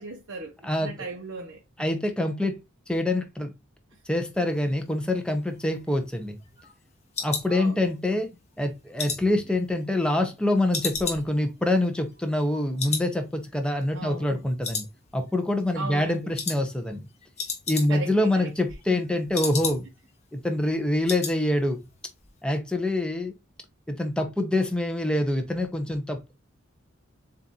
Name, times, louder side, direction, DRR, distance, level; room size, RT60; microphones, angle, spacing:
voice 1, 0.0-1.6 7.5-8.2 13.9-14.5 15.7-16.3 17.9-18.5 18.9-19.0, right 3 dB, 85° right, 0.9 m, -38 dB
voice 2, 1.8-2.6 2.9-3.5 4.1-6.4 7.2-8.3 8.6-14.9 15.1-17.0 17.7-19.9 20.3-21.8 22.4-23.3 23.9-26.3, left 1 dB, 5° left, 0.7 m, -25 dB
sound 1, 5.5-8.2 8.6-10.4 10.7-12.5 12.8-13.1 13.4-13.5 14.0-14.4 14.6-15.4 15.7-16.0 16.4-16.6 16.9-17.0 17.2-18.2 18.5-20.1 20.4-20.5 20.8-21.4 21.7-21.9 22.2-22.3, left 5 dB, 35° left, 1.3 m, -34 dB
7.4 x 2.5 x 2.8 m
head